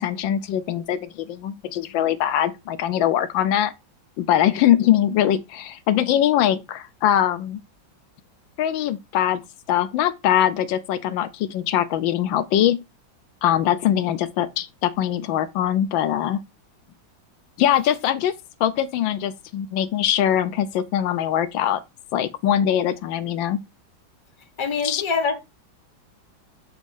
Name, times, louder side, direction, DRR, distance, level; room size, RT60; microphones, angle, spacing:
voice 1, 0.0-3.7 4.2-7.6 8.6-9.4 9.7-12.8 13.4-16.4 17.6-18.3 18.6-21.8 22.1-23.6 24.8-25.0, left 11 dB, 80° left, 1.3 m, -22 dB
voice 2, 24.6-25.4, left 5 dB, 20° left, 0.8 m, -24 dB
7.4 x 3.1 x 5.3 m
omnidirectional pair, 2.2 m